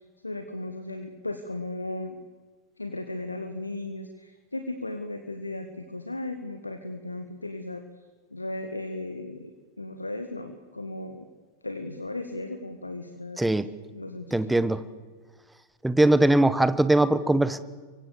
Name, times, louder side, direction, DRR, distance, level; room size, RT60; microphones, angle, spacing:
voice 1, 0.2-2.2 2.8-7.8 8.3-9.5 9.8-11.3 11.6-13.6 13.9-14.7, left 2 dB, 80° left, 8 dB, 1.7 m, -36 dB
voice 2, 13.4-13.7 14.3-14.9 15.8-17.6, right 1 dB, 5° right, 15 dB, 1.3 m, -21 dB
30.0 x 24.0 x 6.9 m, 1.4 s
figure-of-eight pair, 90°, 0 cm